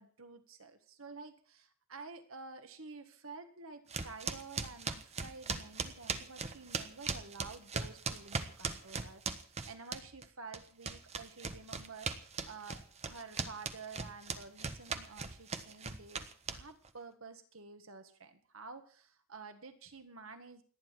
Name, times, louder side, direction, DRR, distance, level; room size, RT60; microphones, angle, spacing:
voice 1, 0.0-20.6, right 4 dB, 80° right, 7 dB, 1.8 m, -50 dB
sound 1, 3.9-10.3 10.5-16.9, right 4 dB, 30° right, 1.2 m, -39 dB
29.5 x 10.0 x 4.5 m, 0.43 s
head